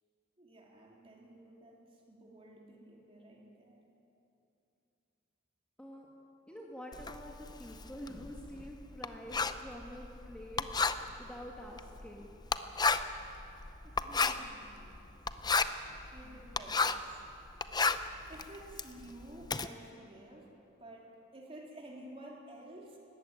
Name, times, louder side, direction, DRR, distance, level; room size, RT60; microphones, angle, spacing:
voice 1, 0.4-3.9 13.8-15.1 15.9-17.1 18.3-23.0, right 1 dB, 30° right, -2 dB, 3.3 m, -52 dB
voice 2, 6.5-10.9 11.2-12.3, equal, 5° left, -2 dB, 1.8 m, -47 dB
Writing, 6.9-17.1 17.5-19.7, left 4 dB, 20° left, 0.6 m, -33 dB
19.5 x 15.0 x 9.0 m, 2.8 s
head